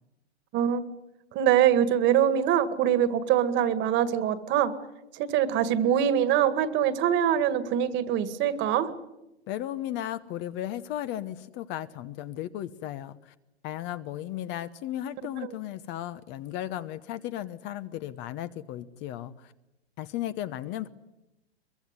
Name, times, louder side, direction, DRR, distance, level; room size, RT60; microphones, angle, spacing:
voice 1, 1.3-4.7 5.1-8.9, right 10 dB, 35° right, 13 dB, 2.0 m, -24 dB
voice 2, 9.5-13.3 13.6-19.5 20.0-20.9, left 12 dB, 35° left, 13 dB, 1.0 m, -35 dB
23.0 x 22.5 x 9.6 m, 0.94 s
hypercardioid pair, 135°, 33 cm